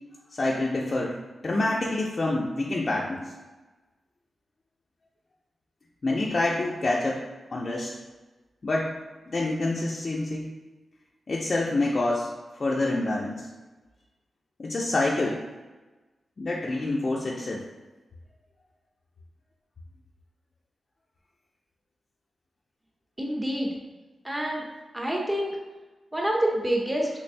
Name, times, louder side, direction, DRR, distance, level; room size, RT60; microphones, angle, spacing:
voice 1, 0.3-1.2 1.4-3.2 6.0-7.2 7.5-7.9 8.6-8.9 9.3-10.5 11.3-12.3 12.6-13.5 14.6-15.4 16.4-17.6, left 2 dB, 50° left, -4 dB, 0.4 m, -27 dB
voice 2, 23.2-23.7 24.2-24.6 24.9-25.6 26.1-27.1, right 1 dB, 15° right, -2 dB, 0.8 m, -27 dB
3.5 x 3.2 x 2.5 m, 1.2 s
cardioid pair, 80°, 0 cm